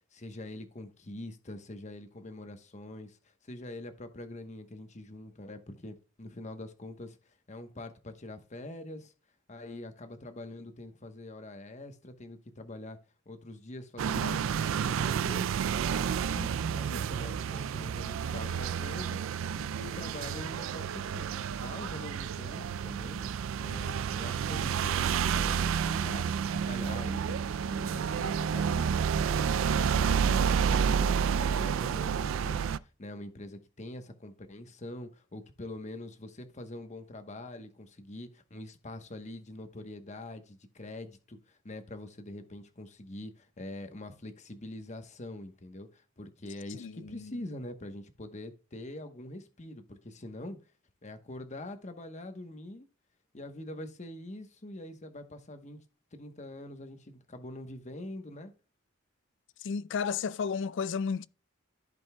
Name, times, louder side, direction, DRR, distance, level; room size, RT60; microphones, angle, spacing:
voice 1, 0.1-3.2 3.4-9.1 9.5-13.0 13.3-15.5 16.2-19.3 19.5-23.3 23.6-27.4 27.7-50.6 51.0-52.9 53.3-55.8 56.1-58.5, left 1 dB, 35° left, 1.0 m, -44 dB
sound 1, 14.0-32.8, right 7 dB, 70° right, 0.3 m, -30 dB
voice 2, 46.7-47.4 59.6-61.3, left 6 dB, 60° left, 0.4 m, -33 dB
14.5 x 5.2 x 2.2 m
head